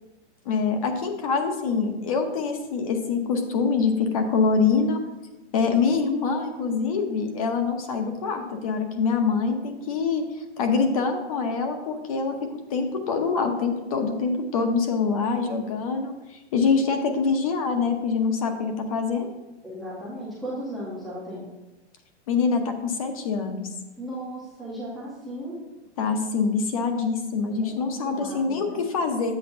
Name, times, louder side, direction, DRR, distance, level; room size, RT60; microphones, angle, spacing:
voice 1, 0.4-5.0 5.5-12.3 12.7-19.3 22.3-23.7 26.0-29.3, left 5 dB, 30° left, 6 dB, 0.8 m, -25 dB
voice 2, 19.6-21.5 24.0-25.6 27.6-28.8, equal, ahead, -9 dB, 0.5 m, -36 dB
10.5 x 8.0 x 2.5 m, 1.1 s
hypercardioid pair, 175°, 36 cm